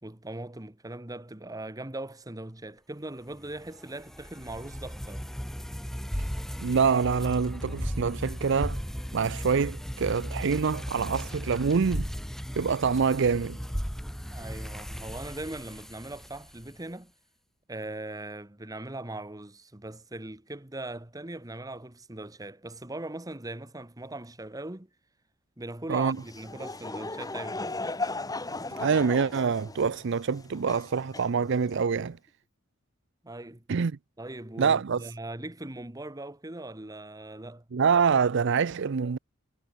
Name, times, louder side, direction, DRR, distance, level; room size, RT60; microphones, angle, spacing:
voice 1, 0.0-5.3 14.3-17.1 17.7-24.9 25.6-27.7 33.2-33.6 34.2-37.6, right 2 dB, 20° right, 1.4 m, -40 dB
sound 1, 3.4-16.8, equal, ahead, 1.4 m, -36 dB
voice 2, 6.6-8.8 9.1-12.1 12.6-13.6 25.9-26.2 28.8-32.2 33.7-33.9 34.6-35.0 37.7-39.2, right 5 dB, 65° right, 0.5 m, -25 dB
Laughter / Crowd, 26.1-31.8, left 2 dB, 20° left, 2.5 m, -37 dB
head